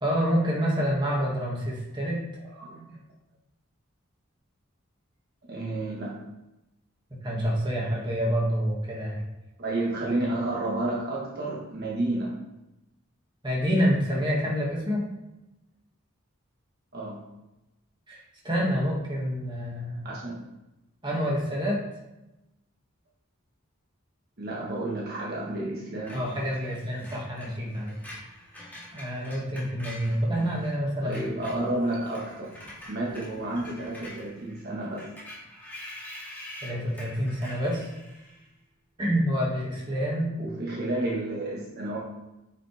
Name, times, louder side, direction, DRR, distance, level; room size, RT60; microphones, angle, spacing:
voice 1, 0.0-2.2 7.1-9.2 13.4-15.0 18.1-20.1 21.0-21.8 26.1-27.9 28.9-31.2 36.6-37.9 39.0-40.3, equal, 20° right, -4 dB, 2.1 m, -27 dB
voice 2, 2.6-2.9 5.5-6.2 9.6-12.3 16.9-17.3 20.0-20.4 24.4-26.2 31.0-32.6 32.9-35.1 40.4-42.0, right 2 dB, 50° right, -5 dB, 1.6 m, -31 dB
Screech, 26.1-30.7 31.0-38.5, left 1 dB, 10° left, 2.3 m, -45 dB
9.0 x 5.7 x 3.5 m, 0.96 s
head